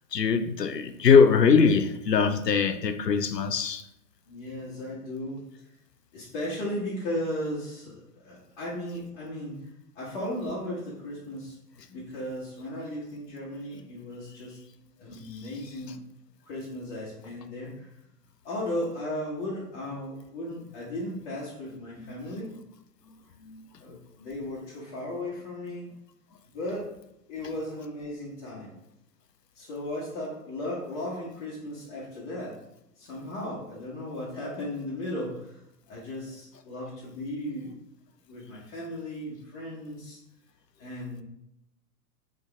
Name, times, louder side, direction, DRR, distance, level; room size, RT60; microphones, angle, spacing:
voice 1, 0.1-3.8 22.0-22.1 23.4-23.7, left 5 dB, 90° left, 0.6 m, -22 dB
voice 2, 4.3-5.7 6.1-9.7 9.9-11.6 11.9-16.0 16.4-17.9 18.4-22.5 23.8-25.9 26.5-26.9 27.3-28.7 29.5-32.6 33.0-37.8 38.3-40.2 40.8-41.2, left 1 dB, 40° left, 1.4 m, -36 dB
3.8 x 3.7 x 3.4 m
figure-of-eight pair, 110°, 47 cm